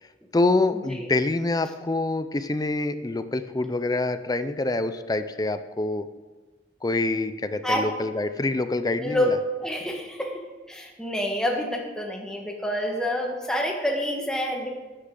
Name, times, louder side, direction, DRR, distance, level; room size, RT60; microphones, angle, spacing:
voice 1, 0.3-6.1 6.8-9.4, left 2 dB, 20° left, 11 dB, 0.5 m, -26 dB
voice 2, 9.6-14.7, equal, 5° left, 0 dB, 1.5 m, -28 dB
13.0 x 10.0 x 3.8 m, 1.2 s
head